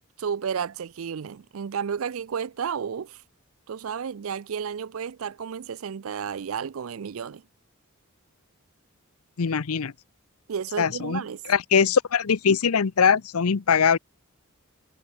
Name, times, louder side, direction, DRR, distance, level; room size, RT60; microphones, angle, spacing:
voice 1, 0.2-3.2 3.7-7.4 10.5-11.4, right 7 dB, 70° right, 0.4 m, -32 dB
voice 2, 9.4-9.9 10.8-14.0, left 6 dB, 85° left, 0.7 m, -22 dB
head